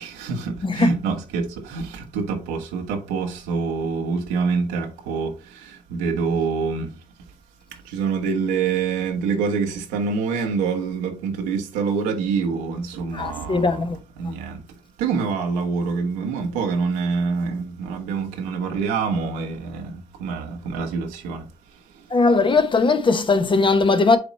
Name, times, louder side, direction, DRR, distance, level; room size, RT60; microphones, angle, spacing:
voice 1, 0.0-1.4 1.7-5.3 5.9-6.9 7.9-13.8 14.2-14.5 15.0-19.9 20.2-21.4, right 5 dB, 80° right, 1.3 m, -25 dB
voice 2, 13.1-14.0 22.1-24.2, left 3 dB, 30° left, 0.9 m, -19 dB
7.9 x 3.0 x 4.1 m
hypercardioid pair, 60°, 17 cm